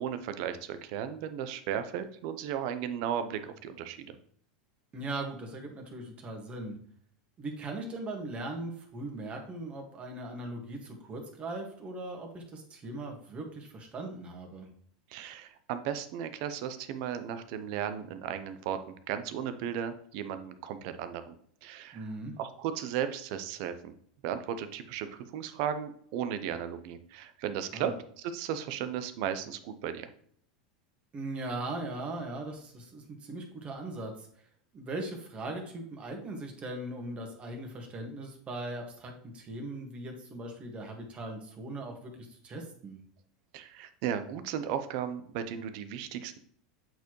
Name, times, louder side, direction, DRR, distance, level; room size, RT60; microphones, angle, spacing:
voice 1, 0.0-4.1 15.1-21.4 21.6-22.1 22.4-23.9 24.2-30.1 43.5-46.4, right 9 dB, 60° right, 10 dB, 0.8 m, -35 dB
voice 2, 4.9-6.8 7.4-14.7 21.9-22.3 27.7-27.9 31.1-34.3 34.7-43.0, right 2 dB, 30° right, 3 dB, 1.9 m, -39 dB
8.0 x 4.4 x 3.2 m, 0.63 s
hypercardioid pair, 105°, 4 cm